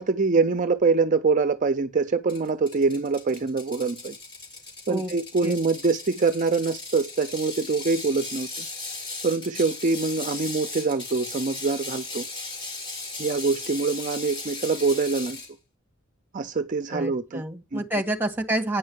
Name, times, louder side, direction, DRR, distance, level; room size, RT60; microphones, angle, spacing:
voice 1, 0.0-4.1 4.9-8.7 9.2-12.3 13.2-15.4 16.3-17.4 17.7-17.8, right 4 dB, 40° right, 0.5 m, -24 dB
Ratchet pawl, 2.3-15.5, left 3 dB, 25° left, 3.7 m, -37 dB
voice 2, 16.9-18.8, right 1 dB, 10° right, 1.6 m, -28 dB
9.2 x 5.5 x 7.9 m
head